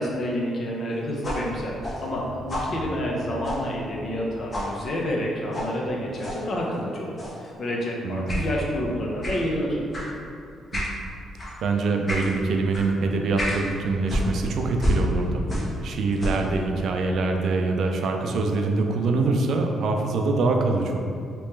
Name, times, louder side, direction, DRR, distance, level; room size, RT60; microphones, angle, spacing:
voice 1, 0.0-7.1 7.4-9.8, equal, 50° left, -2 dB, 0.7 m, -29 dB
sound 1, 1.2-4.2 4.5-4.7 5.5-5.7 6.2-6.4 7.2-7.5 8.3-8.5 9.2-9.4 9.9-10.1 10.7-11.0 11.4-11.6 12.1-12.3 12.7-12.9 13.4-13.6 14.1-15.8 16.1-16.5, equal, 35° left, 1.1 m, -29 dB
voice 2, 8.0-8.4 10.7-10.9 11.6-15.4 15.8-21.0, right 3 dB, 65° right, 3 dB, 0.4 m, -24 dB
3.2 x 3.0 x 3.2 m, 2.4 s
cardioid pair, 90°, 0 cm